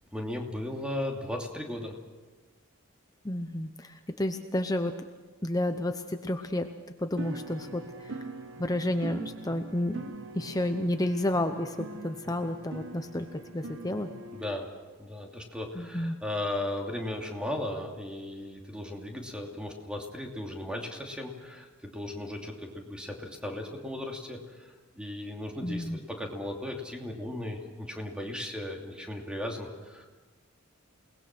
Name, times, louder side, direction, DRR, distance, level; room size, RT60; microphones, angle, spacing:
voice 1, 0.1-1.9 14.3-14.7 15.0-30.1, left 1 dB, 5° right, 1 dB, 2.8 m, -36 dB
voice 2, 3.2-4.9 5.4-6.7 7.0-8.2 8.6-14.1 15.8-16.2 25.6-26.0, left 1 dB, 20° left, 7 dB, 0.8 m, -31 dB
sound 1, 7.2-14.6, right 1 dB, 60° right, 1.5 m, -42 dB
28.5 x 20.0 x 6.1 m, 1.3 s
head